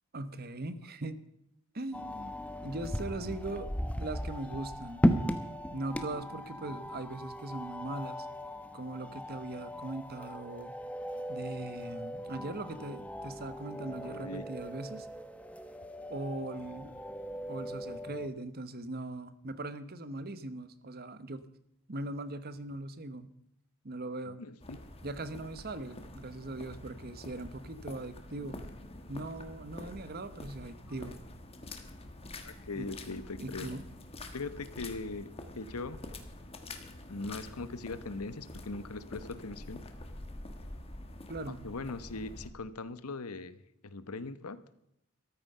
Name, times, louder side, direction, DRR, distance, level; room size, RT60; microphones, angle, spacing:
voice 1, 0.1-1.2 1.7-2.3 2.6-3.7 4.0-5.0 5.7-8.3 8.7-10.8 11.3-15.1 16.1-16.9 17.5-21.4 21.9-23.3 23.8-24.4 25.0-28.6 29.1-31.2 32.8-32.9 33.4-33.8 41.3-41.7, right 2 dB, 45° right, 13 dB, 1.0 m, -40 dB
sound 1, 1.9-18.3, equal, 5° left, 0.9 m, -37 dB
voice 2, 14.0-14.5 24.4-24.8 32.4-33.7 34.3-36.0 37.1-39.8 41.5-43.6 43.8-44.6, left 3 dB, 90° left, 14 dB, 1.0 m, -40 dB
sound 2, 24.6-42.5, left 2 dB, 25° left, 1.5 m, -47 dB
14.0 x 13.0 x 5.5 m, 0.77 s
head